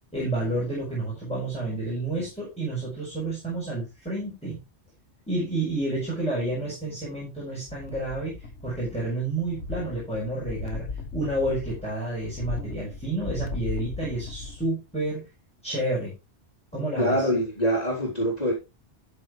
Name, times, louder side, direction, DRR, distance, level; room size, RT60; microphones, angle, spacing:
voice 1, 0.1-4.6 5.3-8.3 8.6-10.9 11.1-15.2 15.6-16.1 16.7-17.3, right 2 dB, 5° left, -6 dB, 6.1 m, -30 dB
sound 1, 7.7-9.1 9.4-14.7 15.1-15.2, left 3 dB, 85° left, 1.7 m, -37 dB
voice 2, 17.0-18.5, equal, 35° left, -7 dB, 4.0 m, -24 dB
13.0 x 7.2 x 3.3 m, 0.28 s
omnidirectional pair, 1.1 m